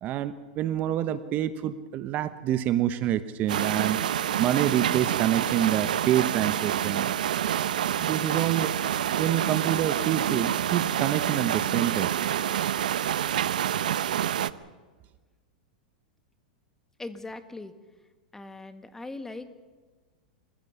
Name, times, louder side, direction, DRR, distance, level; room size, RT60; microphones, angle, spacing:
voice 1, 0.0-4.0 4.4-7.1 8.0-8.9 9.2-12.1, right 11 dB, 40° right, 12 dB, 1.1 m, -27 dB
sound 1, 3.5-14.5, right 10 dB, 75° right, 0.7 m, -27 dB
voice 2, 17.0-17.7 18.3-19.5, left 2 dB, 10° left, 9 dB, 1.7 m, -40 dB
28.5 x 15.5 x 7.1 m, 1.4 s
hypercardioid pair, 110°, 4 cm